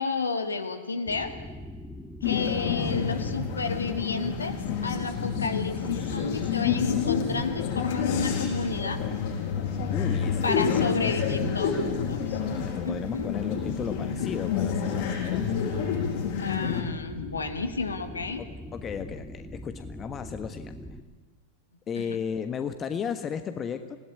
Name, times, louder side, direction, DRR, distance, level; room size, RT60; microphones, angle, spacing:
voice 1, 0.0-1.3 2.2-9.0 10.4-12.2 12.9-13.3 16.4-18.4 22.0-22.1, left 4 dB, 75° left, 8 dB, 2.2 m, -31 dB
sound 1, 1.1-21.0, equal, ahead, 2.1 m, -42 dB
sound 2, 2.2-16.8, left 7 dB, 50° left, 7.3 m, -29 dB
voice 2, 2.5-3.0 9.9-12.2 12.6-15.7 18.4-20.7 21.9-24.0, left 7 dB, 25° left, 9 dB, 1.4 m, -35 dB
27.0 x 18.0 x 9.7 m, 1.3 s
figure-of-eight pair, 90°, 0 cm